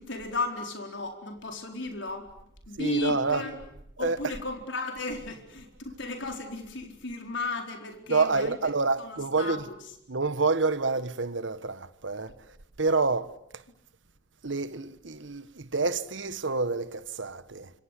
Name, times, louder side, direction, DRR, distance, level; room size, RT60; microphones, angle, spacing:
voice 1, 0.0-2.3 2.7-3.6 4.0-8.6 9.0-9.8, left 2 dB, 75° left, 4.4 m, -34 dB
voice 2, 2.8-3.4 4.0-4.2 8.1-9.6 10.1-12.3 12.8-13.6 14.4-17.7, right 4 dB, 80° right, 1.3 m, -28 dB
26.0 x 26.0 x 8.4 m
head